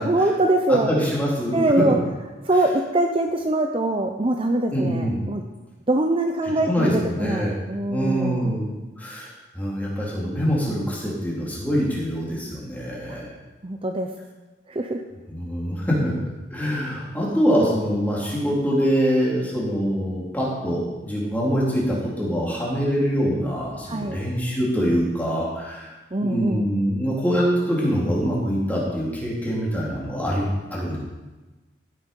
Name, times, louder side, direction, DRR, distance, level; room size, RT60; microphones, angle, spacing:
voice 1, 0.0-0.9 1.5-2.0 2.4-5.4 5.9-8.6 13.1-13.2 13.6-14.1 14.7-15.0 23.9-24.2 26.1-26.7, right 2 dB, 30° right, 4 dB, 0.7 m, -23 dB
voice 2, 0.7-1.8 4.7-5.2 6.7-7.5 7.9-13.4 15.3-16.1 16.5-25.9 26.2-31.0, equal, 10° left, -5 dB, 3.6 m, -24 dB
15.5 x 8.5 x 5.4 m, 1.2 s
head